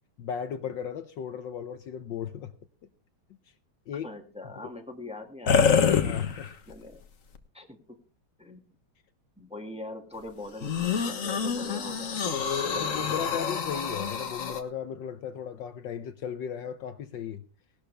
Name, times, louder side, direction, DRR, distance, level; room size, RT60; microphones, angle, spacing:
voice 1, 0.2-2.5 3.9-4.1 4.5-4.7 6.0-6.5 12.7-17.4, left 8 dB, 70° left, 9 dB, 1.4 m, -36 dB
voice 2, 4.0-5.7 6.7-7.0 7.5-8.0 8.4-8.6 9.4-12.2 12.6-13.4, left 2 dB, 5° right, 3 dB, 1.8 m, -42 dB
sound 1, 5.5-6.7 7.3-7.4 10.6-14.6, left 6 dB, 45° left, 1.4 m, -26 dB
18.5 x 12.0 x 3.3 m, 0.34 s
omnidirectional pair, 2.3 m